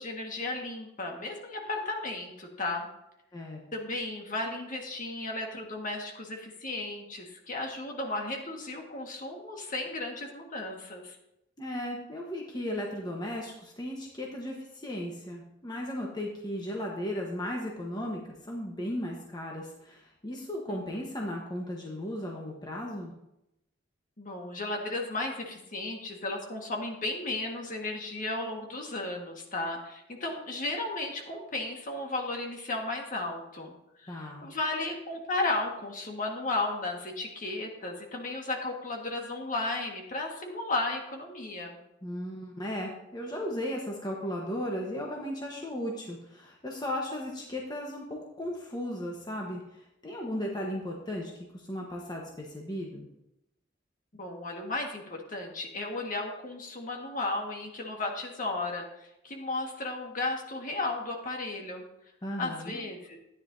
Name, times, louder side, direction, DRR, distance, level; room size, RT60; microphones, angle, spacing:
voice 1, 0.0-2.9 3.7-11.2 20.7-20.8 24.2-33.7 34.0-41.8 54.1-61.8 62.4-63.2, left 2 dB, 45° left, 1 dB, 1.7 m, -34 dB
voice 2, 11.6-23.1 34.1-34.5 42.0-49.6 50.0-53.1 62.2-62.8, left 1 dB, 20° left, -1 dB, 1.2 m, -36 dB
13.0 x 9.8 x 2.7 m, 0.86 s
head